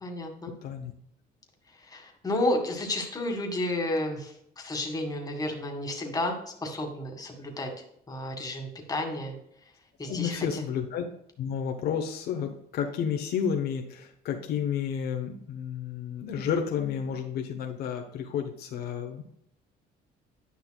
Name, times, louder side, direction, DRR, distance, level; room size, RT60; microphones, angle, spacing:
voice 1, 0.0-0.5 1.8-6.4 6.6-7.7 8.1-9.3 10.0-10.6, left 1 dB, 20° left, 2 dB, 1.8 m, -31 dB
voice 2, 0.6-0.9 10.1-11.0 11.4-19.3, left 7 dB, 70° left, 4 dB, 1.0 m, -31 dB
10.5 x 5.6 x 2.3 m, 0.72 s
cardioid pair, 110°, 17 cm